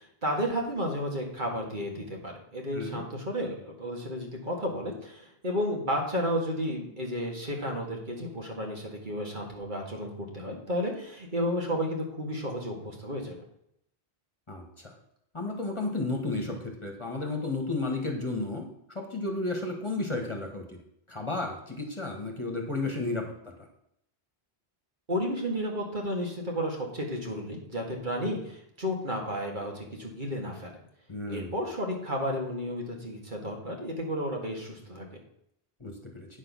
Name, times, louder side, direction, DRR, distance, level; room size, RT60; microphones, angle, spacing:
voice 1, 0.0-13.5 25.1-30.7 31.3-35.1, equal, 50° right, 0 dB, 2.0 m, -32 dB
voice 2, 2.7-3.0 14.5-14.9 15.3-18.6 18.9-20.8 21.1-23.2 31.1-31.5 35.8-36.3, left 2 dB, 30° left, 2 dB, 1.7 m, -32 dB
9.1 x 6.3 x 6.1 m, 0.76 s
omnidirectional pair, 1.0 m